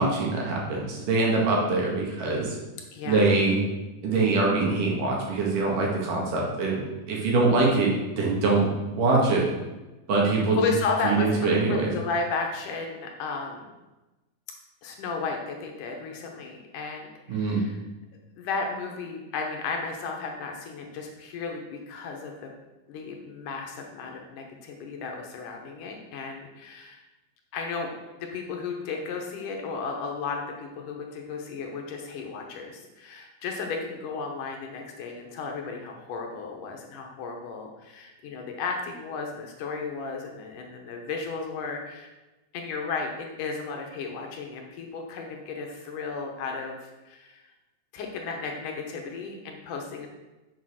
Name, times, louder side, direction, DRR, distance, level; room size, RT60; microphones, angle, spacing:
voice 1, 0.0-2.6 3.1-3.6 4.0-9.4 10.1-10.6 11.0-11.9 17.3-17.7, right 3 dB, 70° right, -2 dB, 3.3 m, -24 dB
voice 2, 2.9-3.3 10.6-11.3 11.7-13.7 14.8-17.8 18.4-22.5 22.9-27.0 27.5-42.1 42.5-47.4 47.9-50.1, left 4 dB, 70° left, 2 dB, 2.4 m, -34 dB
7.4 x 6.5 x 6.2 m, 1.1 s
omnidirectional pair, 4.1 m